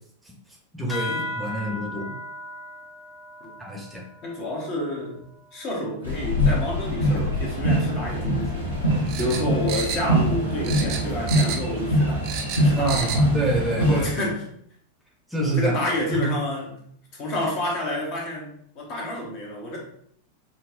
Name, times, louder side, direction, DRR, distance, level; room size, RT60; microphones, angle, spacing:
voice 1, 0.7-2.1 3.6-4.0 12.8-14.3 15.3-15.8 16.1-16.2, right 2 dB, 5° right, -3 dB, 0.9 m, -27 dB
sound 1, 0.9-5.8, left 1 dB, 15° left, 1.1 m, -37 dB
voice 2, 4.2-5.2 5.5-13.2 13.8-14.4 15.6-16.8 17.1-19.8, left 1 dB, 40° left, -1 dB, 1.1 m, -29 dB
sound 2, 6.0-14.1, equal, 90° left, 1.6 m, -23 dB
sound 3, 9.1-10.4 10.6-11.8 12.1-13.3 13.6-13.7, right 6 dB, 40° right, 0.5 m, -31 dB
5.8 x 2.3 x 2.5 m, 0.66 s
figure-of-eight pair, 90°, 0 cm